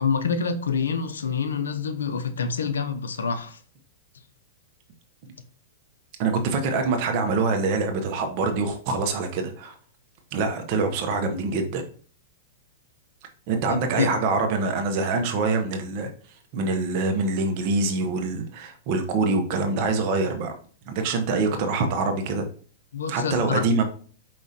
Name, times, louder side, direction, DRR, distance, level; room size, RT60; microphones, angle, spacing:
voice 1, 0.0-3.6 13.7-14.1 22.9-23.6, left 6 dB, 90° left, 10 dB, 0.5 m, -27 dB
voice 2, 6.2-9.7 10.3-11.8 13.5-16.1 16.5-20.5 20.9-22.4 23.1-23.8, right 3 dB, 50° right, 5 dB, 0.9 m, -25 dB
5.0 x 3.0 x 2.7 m, 0.43 s
hypercardioid pair, 125°, 0 cm